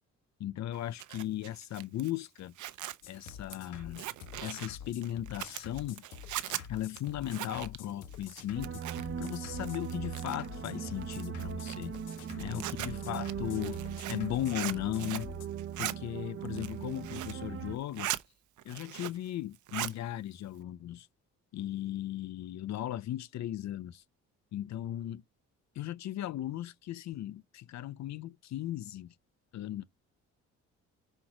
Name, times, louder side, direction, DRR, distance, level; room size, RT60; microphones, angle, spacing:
voice 1, 0.4-2.6 3.1-4.0 4.4-6.0 6.7-11.9 12.4-13.8 14.1-15.3 15.8-18.1 18.6-21.1 21.5-24.0 24.5-25.2 25.7-29.1 29.5-29.8, left 12 dB, 65° left, 0.6 m, -37 dB
Zipper (clothing), 0.7-9.3 9.6-10.6 11.0-15.3 15.6-15.9 16.4-17.4 17.8-18.2 18.6-19.3 19.5-20.0, right 14 dB, 75° right, 0.7 m, -40 dB
sound 1, 3.0-15.5, left 8 dB, 80° left, 1.4 m, -48 dB
sound 2, 8.6-17.8, right 9 dB, 45° right, 0.7 m, -39 dB
5.7 x 4.5 x 5.0 m
cardioid pair, 90°, 30 cm